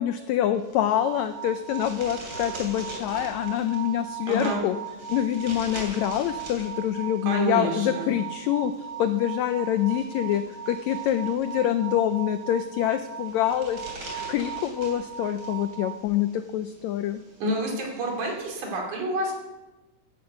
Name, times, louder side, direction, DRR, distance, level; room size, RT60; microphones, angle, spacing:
voice 1, 0.0-4.8 5.1-17.2, left 11 dB, 85° left, 10 dB, 1.6 m, -26 dB
sound 1, 0.5-18.7, right 1 dB, 30° right, 3.2 m, -45 dB
sound 2, 0.8-16.0, right 10 dB, 15° right, 5.6 m, -38 dB
voice 2, 4.3-4.6 7.2-8.1 17.4-19.3, right 1 dB, 65° right, 0 dB, 4.1 m, -28 dB
11.0 x 10.5 x 7.9 m, 1.1 s
omnidirectional pair, 3.8 m